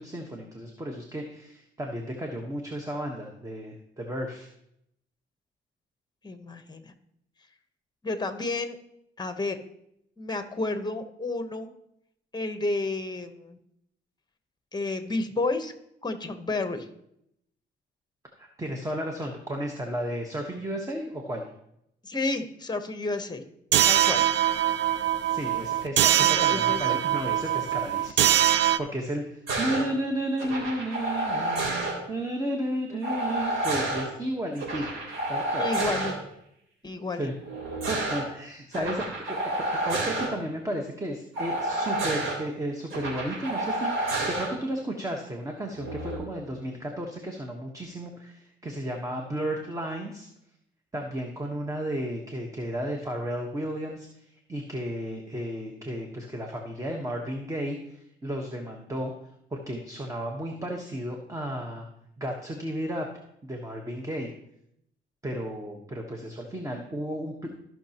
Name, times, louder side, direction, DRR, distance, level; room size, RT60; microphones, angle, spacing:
voice 1, 0.0-4.5 18.4-21.4 25.3-35.7 37.2-37.3 37.9-50.3 50.9-59.1 59.5-61.9 62.2-63.1 63.4-64.3 65.2-67.5, right 1 dB, 15° right, 2 dB, 1.2 m, -33 dB
voice 2, 6.2-6.9 8.0-8.8 9.2-9.6 10.2-11.7 12.3-13.6 14.7-15.7 16.0-16.9 22.0-23.4 23.8-24.3 26.2-26.8 35.6-36.1 36.8-37.3 38.7-38.9, left 2 dB, 20° left, 8 dB, 1.1 m, -31 dB
sound 1, 23.7-28.8, right 11 dB, 65° right, 0.5 m, -23 dB
sound 2, 29.5-29.8 30.4-31.9 33.0-34.0 34.6-36.1 37.4-38.2 38.7-40.3 41.4-42.4 42.9-44.5 45.8-46.2, right 1 dB, 90° right, 3.3 m, -29 dB
15.0 x 6.0 x 2.9 m, 0.77 s
cardioid pair, 90°, 20 cm